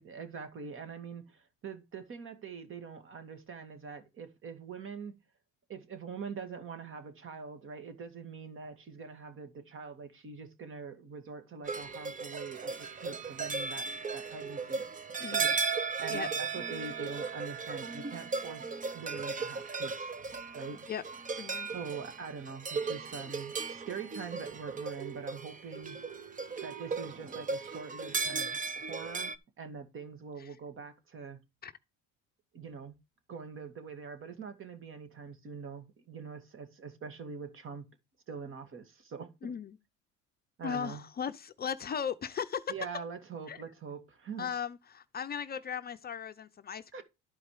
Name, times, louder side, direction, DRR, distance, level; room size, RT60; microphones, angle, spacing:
voice 1, 0.0-5.1 5.7-14.8 15.3-15.5 16.0-20.1 20.5-20.8 21.7-26.0 26.6-31.4 32.5-33.0 33.3-37.9 38.3-39.5 40.6-41.0 42.7-44.5 46.9-47.0, right 5 dB, 40° right, 2.2 m, -44 dB
sound 1, 11.7-29.4, right 4 dB, 25° right, 1.0 m, -36 dB
voice 2, 21.4-21.7 30.4-30.5 31.6-31.7 39.4-39.8 40.6-42.7 43.5-43.6 44.4-47.0, left 7 dB, 30° left, 0.7 m, -37 dB
12.0 x 5.0 x 4.8 m
cardioid pair, 110°, 30 cm